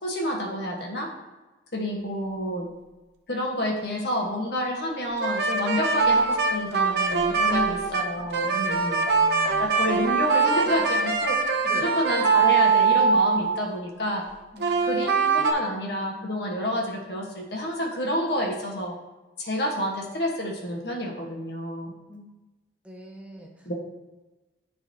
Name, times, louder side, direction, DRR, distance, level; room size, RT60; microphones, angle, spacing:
voice 1, 0.0-1.1 1.7-2.7 3.3-9.0 9.6-11.4 11.7-14.2 14.8-19.0 19.4-21.9 23.6-23.7, equal, 65° left, -1 dB, 1.4 m, -29 dB
sound 1, 5.2-13.7 14.6-15.5, right 4 dB, 65° right, 0.7 m, -22 dB
voice 2, 8.4-9.7 11.6-11.8 14.5-14.8 22.1-22.2 22.8-23.7, equal, 5° right, 0 dB, 0.6 m, -43 dB
11.0 x 3.9 x 2.9 m, 1.1 s
head